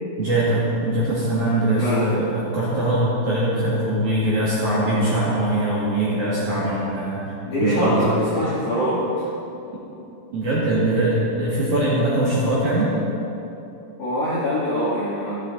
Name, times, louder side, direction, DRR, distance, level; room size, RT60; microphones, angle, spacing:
voice 1, 0.2-8.0 10.3-12.9, right 1 dB, 50° right, -8 dB, 2.6 m, -22 dB
voice 2, 1.8-2.1 7.4-9.3 14.0-15.3, equal, 55° left, -9 dB, 2.5 m, -23 dB
14.0 x 13.0 x 4.1 m, 2.9 s
omnidirectional pair, 5.9 m